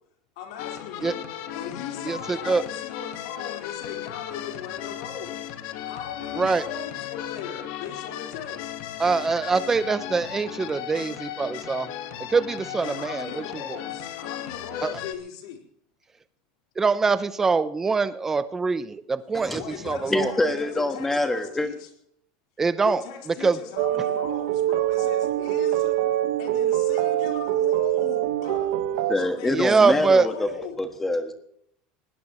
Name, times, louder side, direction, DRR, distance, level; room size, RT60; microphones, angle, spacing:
voice 1, 0.4-1.2 1.5-5.3 5.8-8.7 12.8-15.6 19.5-21.9 22.8-25.9 26.4-28.7 29.2-30.8, left 7 dB, 80° left, 2 dB, 4.4 m, -38 dB
sound 1, 0.6-15.1, left 11 dB, 50° left, 1.5 m, -36 dB
voice 2, 2.0-2.6 6.4-6.7 9.0-11.9 12.3-13.4 14.8-14.9 16.8-20.3 22.6-23.0 23.4-23.6 29.5-30.3, right 4 dB, 10° right, 13 dB, 0.7 m, -23 dB
voice 3, 20.1-21.7 29.1-30.5 30.8-31.3, left 2 dB, 5° left, 7 dB, 1.4 m, -25 dB
sound 2, 23.8-29.2, right 12 dB, 80° right, 1.3 m, -24 dB
20.5 x 18.5 x 3.1 m, 0.69 s
cardioid pair, 180°, 3 cm